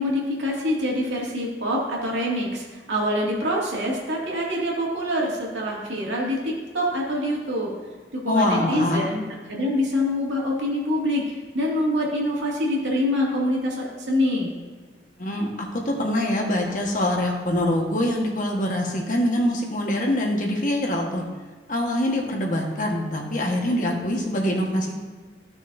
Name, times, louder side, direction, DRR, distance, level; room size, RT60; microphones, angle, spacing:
voice 1, 0.0-7.7 8.1-9.2 9.5-14.6, left 1 dB, 85° right, -3 dB, 2.3 m, -25 dB
voice 2, 8.3-9.1 15.2-21.2 21.7-24.9, left 1 dB, 45° left, 0 dB, 1.4 m, -24 dB
14.5 x 6.2 x 2.7 m, 1.4 s
head